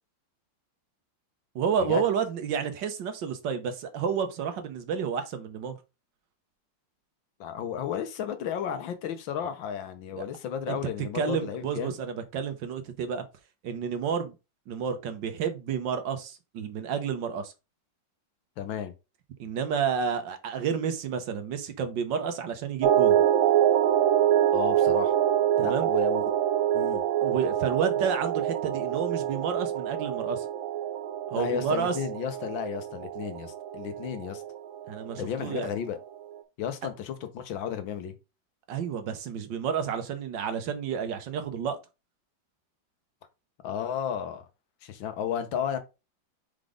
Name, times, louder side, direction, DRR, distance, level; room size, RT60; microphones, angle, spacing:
voice 1, 1.5-5.8 10.2-10.3 10.7-10.8 11.1-13.2 13.6-14.3 14.7-17.5 19.4-23.2 25.6-25.9 27.2-30.4 31.3-32.0 34.9-35.7 38.7-41.8, right 7 dB, 70° right, 1.6 m, -30 dB
voice 2, 7.4-12.0 18.6-18.9 24.5-25.1 25.6-26.2 26.7-27.0 31.3-34.4 35.2-36.0 36.6-38.2 43.6-44.4 44.8-45.8, left 8 dB, 80° left, 1.7 m, -33 dB
sound 1, 22.8-35.7 36.2-36.3, right 11 dB, 85° right, 1.5 m, -26 dB
4.9 x 3.9 x 5.0 m
omnidirectional pair, 2.1 m